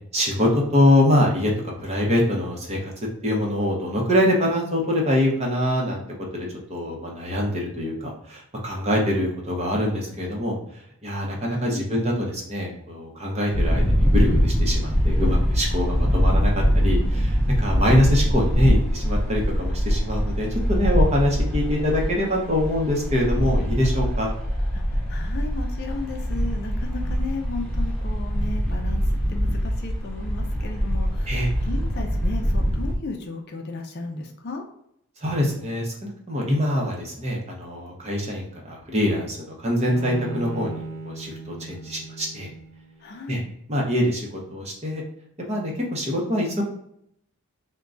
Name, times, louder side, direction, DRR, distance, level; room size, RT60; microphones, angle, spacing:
voice 1, 0.1-1.5 1.8-2.9 3.2-6.0 6.3-10.6 11.0-24.3 31.3-31.5 35.2-42.5 43.3-43.4 43.7-44.2 44.5-45.0 45.4-46.6, left 1 dB, 30° right, -1 dB, 0.8 m, -24 dB
voice 2, 11.5-11.9 24.7-24.8 25.1-29.0 29.3-34.6 43.0-43.4, left 3 dB, 45° left, 3 dB, 0.5 m, -35 dB
sound 1, 13.5-32.9, equal, 5° left, 0.7 m, -23 dB
Bowed string instrument, 39.8-43.1, right 3 dB, 65° right, 0.8 m, -37 dB
3.6 x 2.2 x 3.8 m, 0.74 s
head